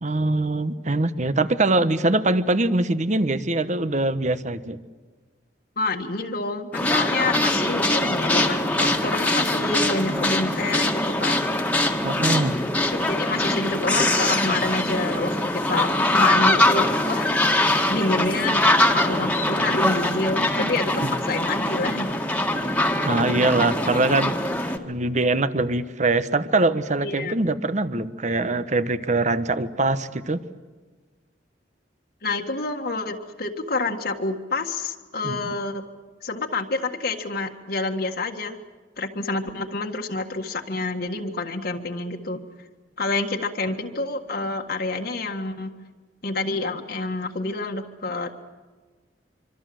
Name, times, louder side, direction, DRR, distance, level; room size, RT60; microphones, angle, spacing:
voice 1, 0.0-4.8 12.0-12.6 20.6-20.7 21.0-21.1 23.0-24.4 24.8-30.4 35.2-35.5, right 2 dB, 45° right, 12 dB, 1.2 m, -23 dB
voice 2, 5.8-11.5 12.9-17.5 17.9-18.6 18.9-22.1 27.0-27.3 32.2-35.8 36.2-38.6 39.0-42.4 43.0-45.7 46.2-48.3, left 2 dB, 60° left, 2 dB, 1.7 m, -28 dB
sound 1, 6.7-24.8, left 1 dB, 10° left, 1.9 m, -22 dB
25.5 x 25.0 x 7.8 m, 1.4 s
head